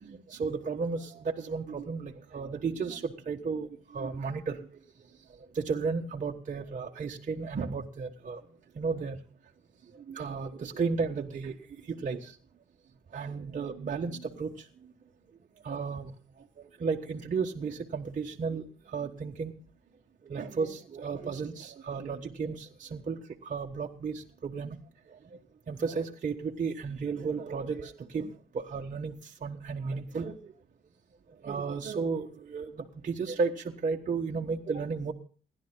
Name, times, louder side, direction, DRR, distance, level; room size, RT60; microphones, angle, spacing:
voice 1, 0.0-4.7 5.5-8.4 8.8-9.2 10.1-11.6 11.9-12.3 13.1-14.5 15.6-16.1 16.8-19.5 20.3-24.8 25.7-30.5 31.4-35.1, right 5 dB, 40° right, 1 dB, 1.2 m, -34 dB
28.5 x 11.0 x 2.2 m, 0.41 s
cardioid pair, 90°, 20 cm